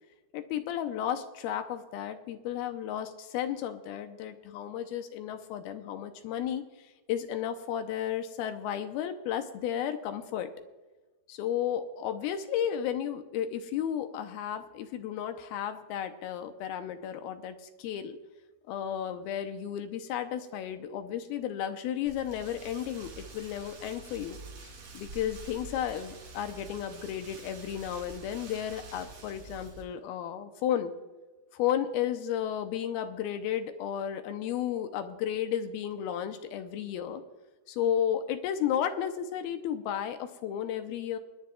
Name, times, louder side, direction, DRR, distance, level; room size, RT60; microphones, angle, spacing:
voice 1, 0.3-10.5 11.3-18.2 18.7-24.4 24.6-30.9 31.5-37.2 37.7-41.2, left 10 dB, 80° left, 8 dB, 2.5 m, -33 dB
Rain, 22.1-29.8, right 3 dB, 85° right, 5.6 m, -47 dB
28.0 x 10.5 x 2.3 m, 1.2 s
omnidirectional pair, 4.5 m